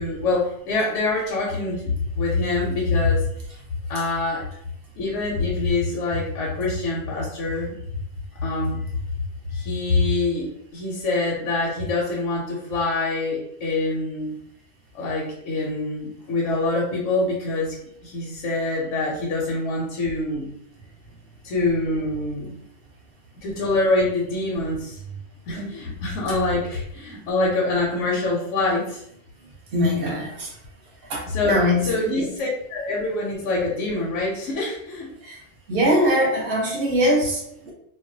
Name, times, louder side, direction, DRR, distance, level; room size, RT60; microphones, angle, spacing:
voice 1, 0.0-3.2 3.9-4.5 4.9-7.7 8.3-8.9 9.5-14.4 14.9-17.7 18.0-20.5 21.4-22.5 23.4-25.0 25.5-29.0 31.2-35.1, left 2 dB, 70° left, -3 dB, 0.9 m, -25 dB
voice 2, 29.7-30.6 31.0-32.3 35.2-35.4 35.7-37.7, equal, 50° right, -2 dB, 0.8 m, -22 dB
2.3 x 2.1 x 2.6 m, 0.73 s
omnidirectional pair, 1.4 m